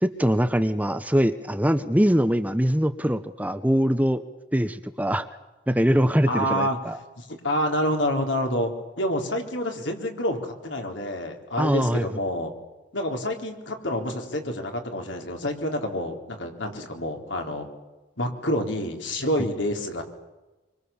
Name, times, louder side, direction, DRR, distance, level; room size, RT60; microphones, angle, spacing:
voice 1, 0.0-4.2 4.5-5.2 5.7-7.0 11.6-12.0, equal, 10° right, 10 dB, 0.8 m, -22 dB
voice 2, 6.3-6.8 7.2-12.5 12.9-17.7 18.2-20.0, equal, 80° left, 3 dB, 3.7 m, -28 dB
25.5 x 24.5 x 7.1 m, 1.1 s
head